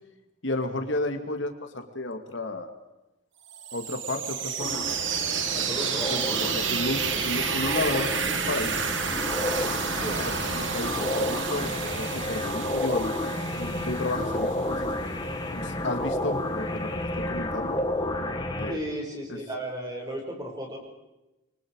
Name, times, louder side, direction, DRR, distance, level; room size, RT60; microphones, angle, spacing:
voice 1, 0.4-2.7 3.7-4.9 6.1-8.8 10.5-13.1 13.5-14.9 15.4-16.9 17.3-17.8 18.6-18.8, left 2 dB, 70° left, 5 dB, 2.6 m, -32 dB
sound 1, 3.5-15.2, right 6 dB, 70° right, 2.4 m, -30 dB
sound 2, 4.6-18.7, left 1 dB, 20° left, 2.1 m, -31 dB
voice 2, 5.5-6.4 9.9-10.3 18.7-20.8, right 1 dB, 20° right, 0 dB, 6.3 m, -35 dB
28.5 x 24.0 x 5.0 m, 1.0 s
head